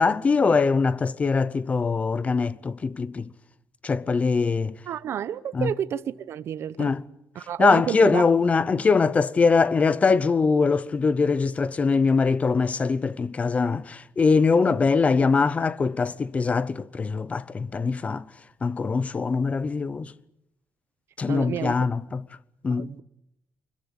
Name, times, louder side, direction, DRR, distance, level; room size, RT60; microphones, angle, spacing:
voice 1, 0.0-3.3 3.8-4.7 5.5-5.7 6.8-7.0 7.6-18.3 18.6-20.1 21.2-22.2 22.6-22.9, left 4 dB, 25° left, 0.8 m, -22 dB
voice 2, 4.9-6.9 7.3-8.2 21.3-21.8 22.7-23.0, right 9 dB, 55° right, 0.9 m, -30 dB
25.0 x 22.0 x 8.3 m
cardioid pair, 140°, 5 cm